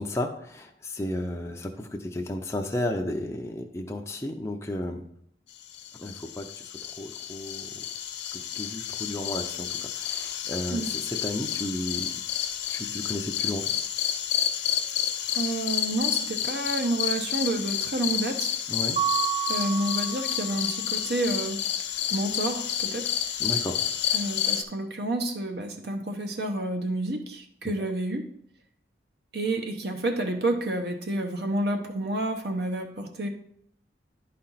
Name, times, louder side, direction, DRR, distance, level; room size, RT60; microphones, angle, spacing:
voice 1, 0.0-5.0 6.0-7.7 8.3-12.1 12.7-13.7 18.7-19.0 23.4-23.8 27.8-27.9, left 1 dB, 15° left, 1 dB, 0.5 m, -33 dB
sound 1, 5.7-24.6, left 10 dB, 75° left, 0.6 m, -30 dB
voice 2, 15.3-18.6 19.5-21.6 22.1-23.1 24.1-28.2 29.3-33.3, right 1 dB, 60° right, 4 dB, 0.8 m, -29 dB
Mallet percussion, 19.0-20.8, right 11 dB, 35° right, 0.3 m, -30 dB
11.0 x 4.3 x 4.0 m, 0.69 s
head